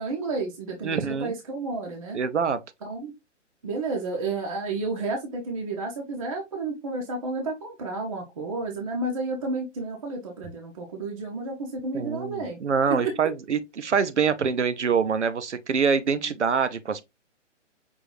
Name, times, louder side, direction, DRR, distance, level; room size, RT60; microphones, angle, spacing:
voice 1, 0.0-2.2 2.8-3.1 3.6-12.6 12.9-13.1, right 3 dB, 30° right, 0.7 m, -31 dB
voice 2, 0.8-1.3 2.1-2.6 11.9-17.0, right 6 dB, 70° right, 0.7 m, -25 dB
5.4 x 2.6 x 3.0 m
figure-of-eight pair, 135°, 37 cm